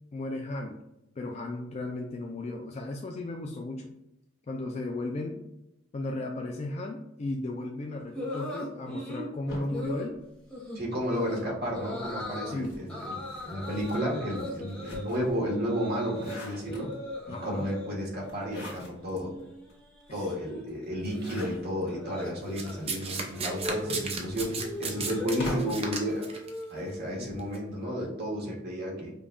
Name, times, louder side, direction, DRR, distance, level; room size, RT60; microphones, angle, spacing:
voice 1, 0.1-0.8 1.2-4.0 4.5-5.4 5.9-10.2 12.5-12.7 17.3-17.7 20.1-20.3 25.4-25.8 27.2-27.3, left 2 dB, 35° left, 1 dB, 0.3 m, -35 dB
sound 1, 8.1-9.3 9.7-10.1 10.5-10.8 11.1-11.4 11.7-12.5 12.9-16.4 16.6-17.9 18.3-18.7 18.9-27.1, left 1 dB, 5° left, 0.8 m, -39 dB
sound 2, 9.5-11.1 11.9-15.4 15.8-17.2 18.2-19.2 19.7-19.8 20.0-20.1 21.0-21.9 22.7-25.9, left 1 dB, 60° left, 1.5 m, -43 dB
voice 2, 10.7-16.9 17.3-19.3 20.1-26.3 26.7-29.1, equal, 55° right, -2 dB, 1.3 m, -32 dB
Domestic sounds home sounds, 22.6-26.5 27.4-27.6, right 4 dB, 30° right, 0.6 m, -34 dB
5.2 x 2.3 x 2.5 m, 0.88 s
head